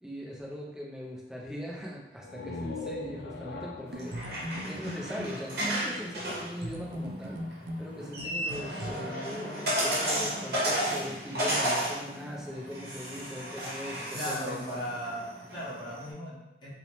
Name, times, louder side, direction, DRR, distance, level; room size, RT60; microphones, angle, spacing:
voice 1, 0.0-7.4 7.8-14.9, equal, 5° right, -4 dB, 0.4 m, -40 dB
sound 1, 2.2-5.8, left 2 dB, 70° left, 0.3 m, -41 dB
sound 2, 3.9-16.1, equal, 60° right, 0.8 m, -33 dB
sound 3, 3.9-5.4 6.6-8.9, equal, 90° right, 0.4 m, -39 dB
voice 2, 14.1-16.7, equal, 25° left, -10 dB, 0.8 m, -37 dB
2.7 x 2.0 x 3.0 m, 0.97 s
head